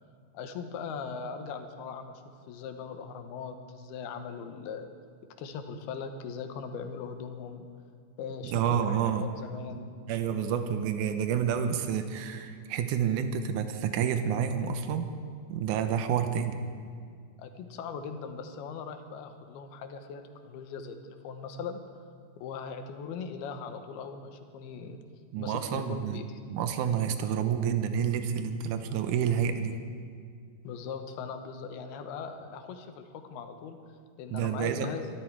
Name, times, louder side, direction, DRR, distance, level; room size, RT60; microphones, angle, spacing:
voice 1, 0.3-2.2 2.5-4.9 5.4-7.7 8.2-9.9 17.4-21.8 22.4-25.0 25.4-26.4 30.6-33.8 34.2-35.1, left 5 dB, 80° left, 7 dB, 2.9 m, -40 dB
voice 2, 8.4-9.3 9.7-9.8 10.1-15.1 15.5-16.6 25.3-29.8 34.3-34.9, right 8 dB, 75° right, 8 dB, 1.9 m, -29 dB
23.0 x 13.0 x 4.6 m, 2.2 s
omnidirectional pair, 4.5 m